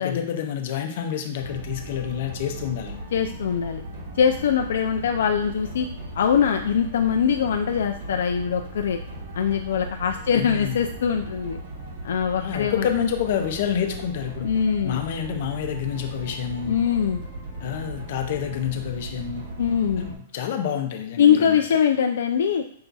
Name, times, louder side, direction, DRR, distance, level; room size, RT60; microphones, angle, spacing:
voice 1, 0.0-3.0 10.3-10.8 12.4-14.5 14.8-16.9 17.6-19.4 20.0-21.6, left 9 dB, 50° left, 4 dB, 0.7 m, -28 dB
sound 1, 1.4-20.1, right 1 dB, 60° right, 1.3 m, -37 dB
voice 2, 3.1-3.8 4.2-5.9 6.1-9.0 9.3-11.6 12.0-12.9 14.4-15.0 16.7-17.2 19.6-20.0 21.2-22.6, left 7 dB, 75° left, 4 dB, 0.4 m, -22 dB
5.6 x 2.3 x 4.0 m, 0.68 s
hypercardioid pair, 165°, 0 cm